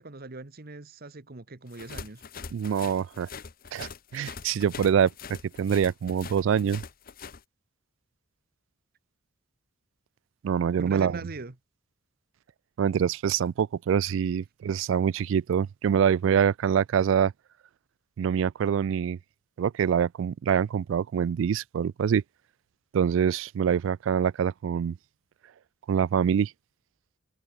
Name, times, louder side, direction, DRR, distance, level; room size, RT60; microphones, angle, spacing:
voice 1, 0.0-2.2 10.8-11.6, right 3 dB, 50° right, 1.2 m, -41 dB
sound 1, 1.7-7.4, left 5 dB, 45° left, 0.9 m, -43 dB
voice 2, 2.5-3.3 3.7-5.1 5.6-6.8 10.4-11.2 12.8-17.3 18.2-19.2 19.6-22.2 22.9-25.0 25.9-26.5, right 8 dB, 65° right, 0.3 m, -25 dB
head